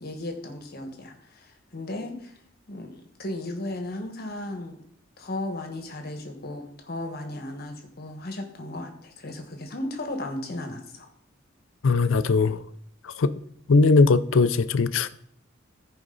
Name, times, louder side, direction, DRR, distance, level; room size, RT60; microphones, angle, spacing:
voice 1, 0.0-2.3 2.7-4.8 5.2-11.1, left 1 dB, 55° left, 1.4 m, -35 dB
voice 2, 11.8-12.6 13.2-13.3 13.7-15.1, left 3 dB, 85° left, 0.5 m, -19 dB
14.0 x 5.0 x 3.9 m
head